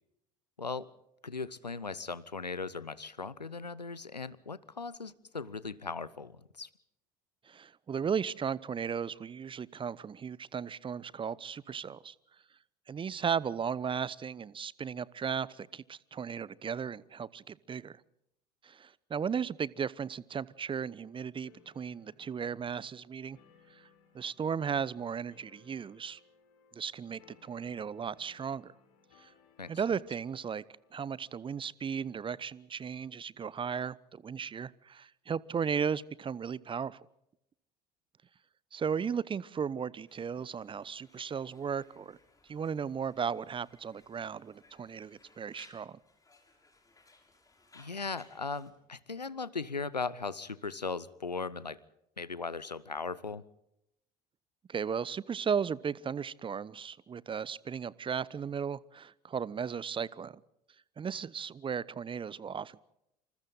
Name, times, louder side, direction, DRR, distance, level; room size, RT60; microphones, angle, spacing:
voice 1, 1.2-6.7 29.6-29.7 47.7-51.8 52.2-53.4, left 4 dB, 90° left, 20 dB, 0.8 m, -38 dB
voice 2, 7.5-12.1 12.9-18.0 18.6-23.4 23.7-23.8 24.1-26.2 26.7-28.7 29.2-29.3 29.7-30.6 30.9-37.0 38.7-42.2 42.5-46.0 54.7-60.4 61.0-62.8, right 7 dB, 25° right, 22 dB, 0.9 m, -36 dB
sound 1, 21.4-31.5, left 7 dB, 65° left, 4.7 m, -65 dB
Conversation, 40.1-48.7, left 3 dB, 15° left, 6.5 m, -63 dB
27.5 x 27.5 x 4.0 m, 0.81 s
figure-of-eight pair, 65°, 20 cm